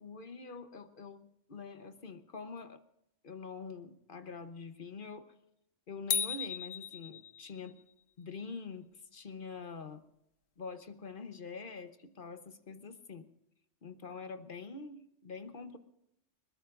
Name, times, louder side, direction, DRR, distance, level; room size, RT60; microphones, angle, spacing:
voice 1, 0.0-2.8 3.2-5.3 5.9-7.8 8.2-10.0 10.6-13.3 13.8-15.8, left 4 dB, 45° left, 10 dB, 1.0 m, -45 dB
sound 1, 6.1-7.7, left 8 dB, 85° left, 1.2 m, -35 dB
21.5 x 20.5 x 2.5 m, 0.79 s
omnidirectional pair, 1.3 m